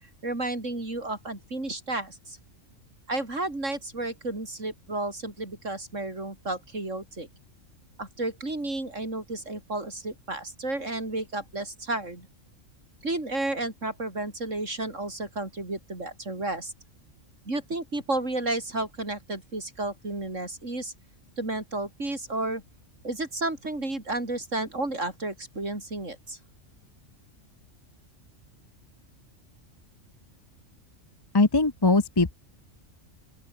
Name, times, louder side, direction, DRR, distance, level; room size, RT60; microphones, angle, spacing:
voice 1, 0.2-2.4 3.1-7.3 8.0-12.3 13.0-16.7 17.5-20.9 21.4-22.6 23.0-26.4, right 2 dB, 70° right, 5.7 m, -32 dB
voice 2, 31.3-32.3, left 3 dB, 20° left, 0.9 m, -21 dB
open air
omnidirectional pair, 1.4 m